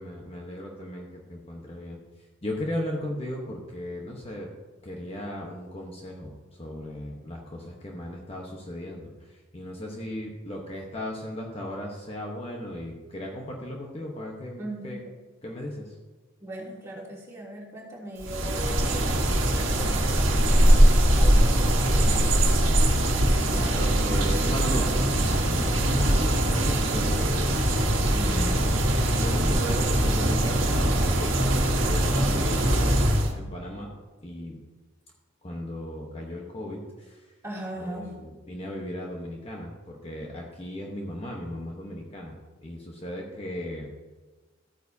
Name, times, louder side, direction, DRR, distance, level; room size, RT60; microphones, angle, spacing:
voice 1, 0.0-2.0 2.4-4.5 4.8-15.0 15.4-15.9 23.5-24.9 25.8-27.5 28.3-28.7 29.1-33.9 34.2-34.6 35.4-37.3 37.8-42.3 42.6-43.9, left 1 dB, 30° left, -1 dB, 1.1 m, -36 dB
voice 2, 14.6-15.0 16.4-19.1 19.5-20.2 20.5-22.2 28.1-28.6 37.4-38.1, right 1 dB, 15° right, -6 dB, 2.9 m, -38 dB
sound 1, 18.2-33.3, right 1 dB, 80° right, 1.5 m, -22 dB
14.0 x 9.1 x 2.8 m, 1.3 s
head